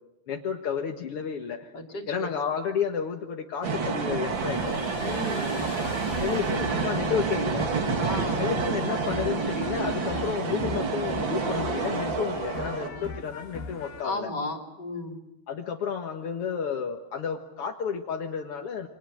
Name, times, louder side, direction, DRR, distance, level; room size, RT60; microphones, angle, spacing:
voice 1, 0.3-1.7 2.1-4.8 6.2-7.7 8.4-14.3 15.5-18.9, left 7 dB, 60° left, 2 dB, 1.6 m, -31 dB
voice 2, 1.7-2.3 5.0-5.8 8.0-8.5 12.9-13.1 14.0-15.2, left 2 dB, 30° left, 3 dB, 3.2 m, -34 dB
sound 1, 3.6-12.9, right 5 dB, 40° right, 1.8 m, -29 dB
sound 2, 4.3-14.0, left 4 dB, 90° left, 4.8 m, -39 dB
29.5 x 25.5 x 6.5 m, 0.91 s
omnidirectional pair, 4.6 m